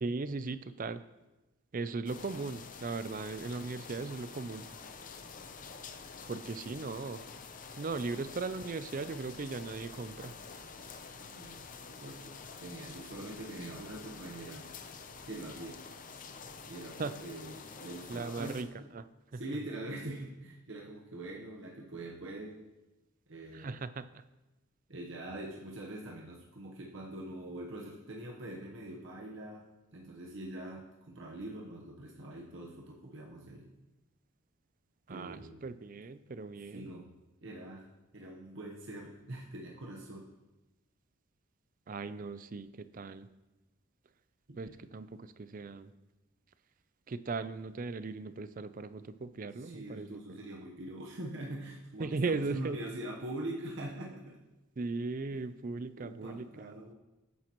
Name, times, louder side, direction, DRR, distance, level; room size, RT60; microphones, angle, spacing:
voice 1, 0.0-1.0 1.7-4.9 6.3-7.2 7.8-10.3 17.0-17.1 18.1-18.7 18.9-19.0 19.3-19.4 23.5-24.2 35.1-36.9 41.9-43.3 44.6-45.9 47.1-50.2 52.0-52.8 54.8-56.7, right 3 dB, 40° right, 12 dB, 0.4 m, -38 dB
sound 1, 2.1-18.6, left 5 dB, 35° left, 0.6 m, -48 dB
voice 2, 11.2-11.7 12.0-14.7 15.2-15.8 16.7-18.9 19.3-22.6 23.3-23.8 24.9-29.6 29.9-33.7 35.1-35.6 36.6-37.1 37.4-37.9 38.1-40.3 44.5-44.9 49.6-54.4 55.3-55.4 56.0-56.9, right 1 dB, 55° right, -2 dB, 1.1 m, -43 dB
14.5 x 9.4 x 3.0 m, 1.0 s
head